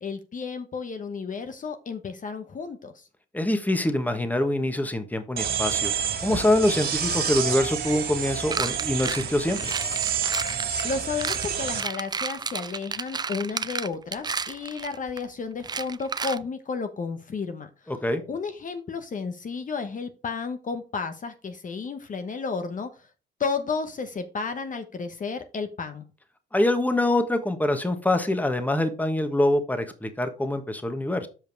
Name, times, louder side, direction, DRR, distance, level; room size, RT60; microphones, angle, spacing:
voice 1, 0.0-2.9 10.8-17.7 18.3-22.9 23.4-26.0, left 5 dB, 40° left, 8 dB, 1.0 m, -32 dB
voice 2, 3.3-5.9 6.2-9.7 17.9-18.2 26.5-31.3, left 1 dB, 10° left, 8 dB, 1.3 m, -24 dB
sound 1, 5.4-11.8, right 7 dB, 55° right, 2.4 m, -29 dB
sound 2, 8.5-15.2 15.6-16.4, right 5 dB, 20° right, 0.4 m, -32 dB
7.7 x 5.2 x 4.6 m, 0.34 s
cardioid pair, 90°, 20 cm